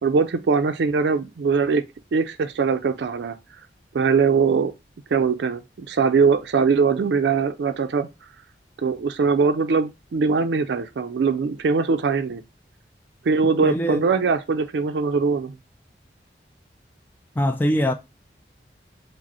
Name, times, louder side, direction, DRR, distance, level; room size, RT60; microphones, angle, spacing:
voice 1, 0.0-1.8 2.1-3.4 3.9-4.7 5.1-8.1 8.8-12.4 13.3-15.5, right 5 dB, 75° right, 0.4 m, -21 dB
voice 2, 13.6-14.1 17.4-17.9, equal, 10° left, 0.3 m, -22 dB
4.9 x 2.0 x 4.1 m
head